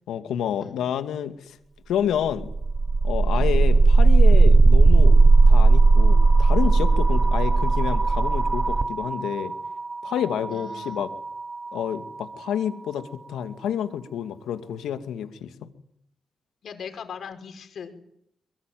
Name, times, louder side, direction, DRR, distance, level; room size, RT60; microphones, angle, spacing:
voice 1, 0.1-1.6 1.9-2.5 3.0-5.2 5.5-9.5 10.0-11.1 11.7-15.7, left 9 dB, 85° left, 8 dB, 2.3 m, -29 dB
sound 1, 2.3-12.2, right 3 dB, 40° right, 1.2 m, -17 dB
voice 2, 10.5-11.0 16.6-18.0, left 6 dB, 70° left, 6 dB, 5.3 m, -39 dB
23.0 x 23.0 x 9.3 m, 0.75 s
supercardioid pair, 55°, 0 cm